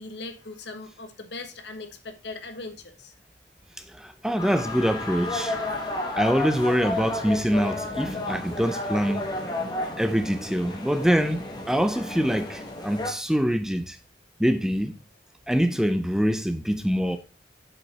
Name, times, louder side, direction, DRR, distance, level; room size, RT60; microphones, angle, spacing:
voice 1, 0.0-3.1, left 3 dB, 70° left, 1.3 m, -39 dB
voice 2, 3.9-5.6 5.9-9.3 10.0-14.0 14.4-14.9 15.5-17.2, equal, 5° right, 0.5 m, -24 dB
sound 1, 4.4-13.1, left 2 dB, 25° left, 1.4 m, -32 dB
7.4 x 5.5 x 4.6 m
head